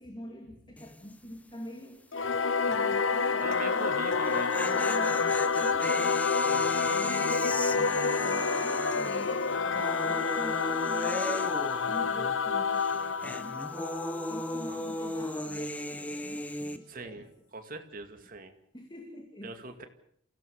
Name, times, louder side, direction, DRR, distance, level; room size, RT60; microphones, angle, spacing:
voice 1, 0.0-2.0 2.4-4.4 4.7-6.2 6.9-11.5 11.9-13.9 14.2-17.3 18.7-19.9, equal, 25° left, 4 dB, 2.6 m, -46 dB
sound 1, 0.8-1.1 1.4-1.5 4.1-12.5 12.7-16.8, left 1 dB, 10° left, 1.2 m, -36 dB
Singing / Musical instrument, 2.1-15.0, left 5 dB, 80° left, 1.0 m, -28 dB
voice 2, 3.4-4.7 6.4-6.9 14.6-14.8 16.2-16.3 16.9-17.3 17.5-18.5 19.4-19.9, right 3 dB, 45° right, 7 dB, 2.3 m, -43 dB
28.0 x 16.5 x 7.1 m, 0.64 s
head